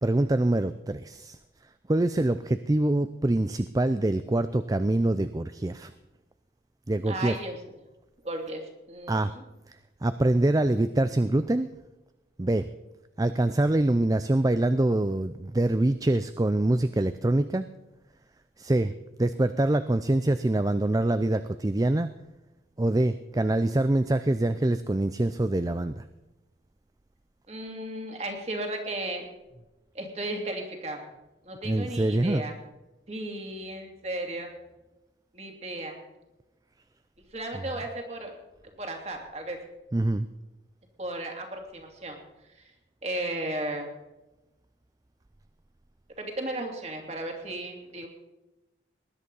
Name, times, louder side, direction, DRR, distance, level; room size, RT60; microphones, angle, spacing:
voice 1, 0.0-1.4 1.9-5.9 6.9-7.4 9.1-9.3 9.7-9.8 10.0-11.7 12.4-12.7 13.2-17.7 18.6-18.9 19.2-22.1 22.8-26.0 31.6-32.4 39.9-40.3, right 1 dB, 20° right, 12 dB, 0.4 m, -25 dB
voice 2, 7.1-7.6 8.2-9.4 27.5-29.3 29.9-31.0 31.4-32.5 33.1-34.5 35.3-36.0 37.3-38.3 38.8-39.6 41.0-42.2 42.6-42.7 43.0-43.9 46.2-48.1, right 1 dB, 35° right, 2 dB, 2.8 m, -35 dB
19.5 x 11.0 x 5.5 m, 1.0 s
head